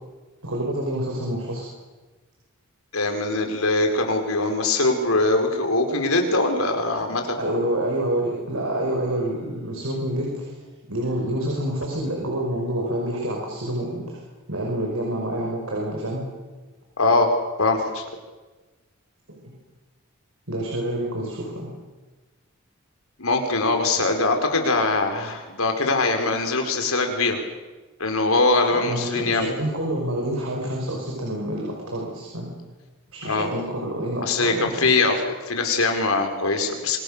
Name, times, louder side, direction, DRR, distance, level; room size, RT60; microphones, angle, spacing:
voice 1, 0.4-1.7 7.0-7.1 7.4-10.5 10.9-14.2 14.5-16.2 19.3-19.4 20.5-21.7 28.7-32.5 33.1-34.9, right 1 dB, 75° right, -1 dB, 5.8 m, -27 dB
voice 2, 2.9-7.4 17.0-17.3 17.6-18.0 23.2-27.4 28.0-29.5 33.2-33.5 34.2-37.0, left 3 dB, 85° left, 4 dB, 4.8 m, -22 dB
27.5 x 24.0 x 6.8 m, 1.3 s
head